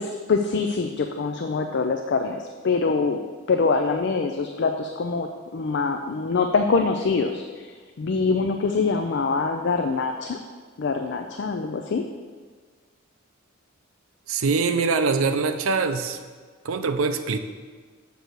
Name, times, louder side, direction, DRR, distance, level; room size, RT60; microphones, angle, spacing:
voice 1, 0.0-3.2 3.5-10.4 10.8-12.0, left 4 dB, 55° left, 5 dB, 0.4 m, -24 dB
voice 2, 14.3-16.2 16.6-17.4, right 4 dB, 85° right, 8 dB, 0.6 m, -23 dB
6.8 x 4.5 x 6.5 m, 1.5 s
head